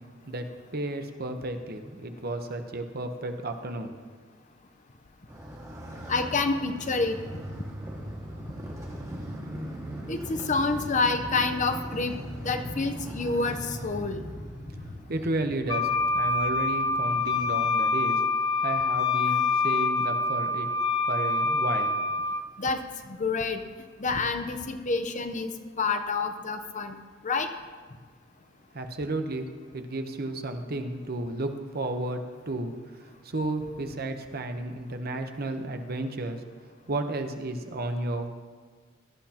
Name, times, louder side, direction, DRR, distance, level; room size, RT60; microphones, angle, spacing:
voice 1, 0.7-3.9 15.1-18.2 18.6-20.7 21.1-22.0 28.7-32.7 33.2-36.4 36.9-38.3, right 2 dB, 50° right, 6 dB, 1.0 m, -32 dB
Motorcycle, 5.3-17.5, equal, 15° right, 1.9 m, -39 dB
voice 2, 6.1-7.2 10.1-12.1 12.4-14.2 22.6-22.8 23.1-23.6 24.0-25.5 25.8-27.0 27.2-27.5, left 3 dB, 40° left, 7 dB, 0.8 m, -28 dB
Wind instrument woodwind instrument, 15.7-22.4, left 3 dB, 20° left, 0.4 m, -26 dB
17.5 x 12.5 x 2.9 m, 1.5 s
head